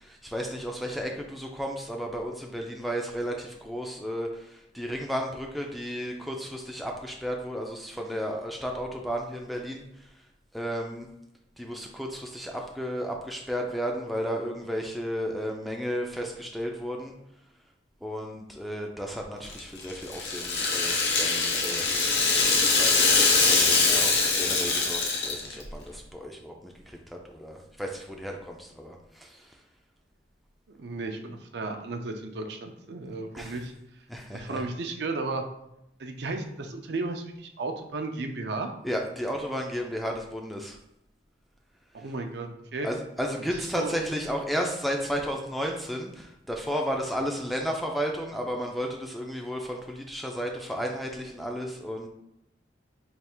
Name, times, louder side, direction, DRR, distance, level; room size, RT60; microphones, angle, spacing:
voice 1, 0.0-10.1 10.5-11.1 11.6-17.1 18.0-21.9 22.8-29.6 33.3-33.6 34.1-34.6 38.8-40.8 42.8-52.1, equal, ahead, 1 dB, 0.3 m, -33 dB
Rattle (instrument), 19.4-25.7, left 4 dB, 80° left, 0.8 m, -23 dB
voice 2, 30.7-33.7 34.3-35.4 36.0-38.7 41.9-42.9 43.5-44.0, right 3 dB, 70° right, 4 dB, 0.5 m, -34 dB
3.3 x 2.4 x 4.4 m, 0.82 s
head